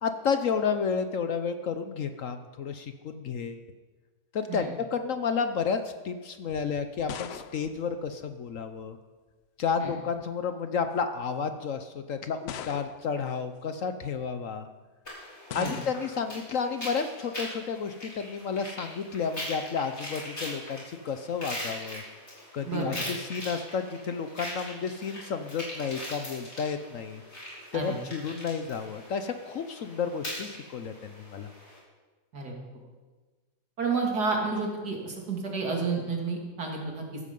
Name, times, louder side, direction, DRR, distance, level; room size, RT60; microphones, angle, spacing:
voice 1, 0.0-3.6 4.3-9.0 9.6-14.7 15.5-22.0 22.5-27.2 27.7-31.5, left 6 dB, 60° left, 8 dB, 1.0 m, -31 dB
sound 1, 6.8-8.8 9.9-10.3 11.1-11.2 12.5-13.3 15.5-16.2, left 9 dB, 90° left, 0.5 m, -41 dB
sound 2, 15.0-31.8, left 1 dB, 40° left, 4.5 m, -41 dB
voice 2, 22.6-23.0 27.7-28.0 32.3-32.5 33.8-37.2, right 4 dB, 70° right, 0 dB, 3.1 m, -30 dB
15.0 x 12.5 x 5.4 m, 1.3 s
omnidirectional pair, 1.8 m